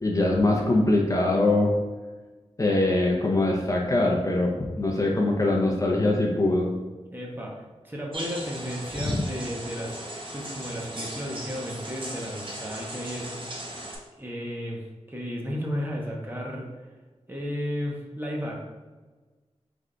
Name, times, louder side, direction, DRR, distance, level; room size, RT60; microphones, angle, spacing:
voice 1, 0.0-1.7 2.6-6.7 9.0-9.2, left 2 dB, 30° left, -1 dB, 0.6 m, -23 dB
voice 2, 7.1-10.0 10.3-13.6 14.2-16.7 17.3-18.6, equal, 15° right, -2 dB, 0.8 m, -34 dB
sound 1, 8.1-14.0, right 1 dB, 45° right, 0.8 m, -37 dB
3.4 x 3.4 x 3.8 m, 1.3 s
wide cardioid pair, 100°, 12 cm